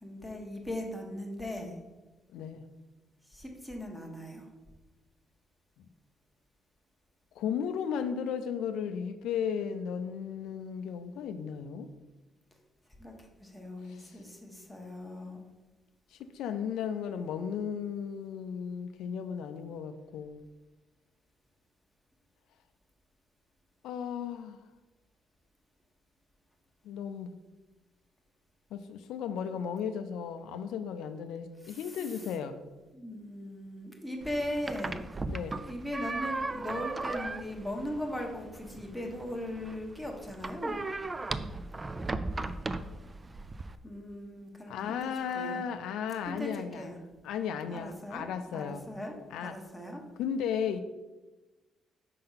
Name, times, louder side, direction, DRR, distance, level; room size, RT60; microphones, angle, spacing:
voice 1, 0.0-1.7 3.3-4.5 13.0-15.4 31.6-32.2 32.9-35.0 35.5-40.8 43.8-45.0 45.3-45.6 46.3-47.0 47.7-48.3 48.5-49.1 49.4-50.0, left 1 dB, ahead, 0 dB, 1.3 m, -39 dB
voice 2, 2.3-2.7 7.4-11.9 13.9-14.2 16.1-20.4 23.8-24.6 26.8-27.4 28.7-32.6 35.3-35.6 44.7-46.9 47.2-48.8 49.3-49.6 50.2-50.8, left 7 dB, 85° left, 9 dB, 0.4 m, -35 dB
sound 1, 34.2-43.8, right 2 dB, 25° right, 0.3 m, -37 dB
5.4 x 3.8 x 5.6 m, 1.1 s
cardioid pair, 90°, 0 cm